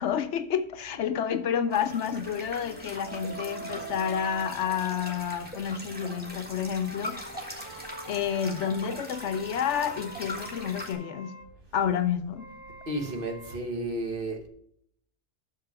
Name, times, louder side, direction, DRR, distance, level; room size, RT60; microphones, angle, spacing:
voice 1, 0.0-11.4 11.7-12.5, left 8 dB, 70° left, 0.9 m, -30 dB
sound 1, 0.9-5.4 6.1-11.5 12.3-13.6, right 3 dB, 15° left, 0.9 m, -45 dB
sound 2, 1.7-10.9, equal, 10° right, 1.6 m, -41 dB
voice 2, 12.9-14.5, right 1 dB, 45° right, 1.3 m, -32 dB
6.5 x 5.8 x 6.6 m
omnidirectional pair, 1.3 m